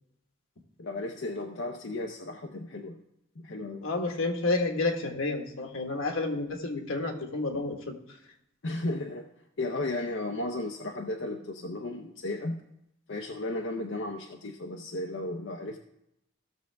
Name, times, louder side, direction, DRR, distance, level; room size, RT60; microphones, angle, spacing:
voice 1, 0.8-3.0 3.4-3.8 8.6-9.3 9.6-12.6 13.1-15.8, left 2 dB, 65° left, 2 dB, 0.7 m, -34 dB
voice 2, 3.8-7.9, left 3 dB, 85° left, 3 dB, 1.5 m, -30 dB
15.5 x 6.5 x 3.4 m, 0.81 s
head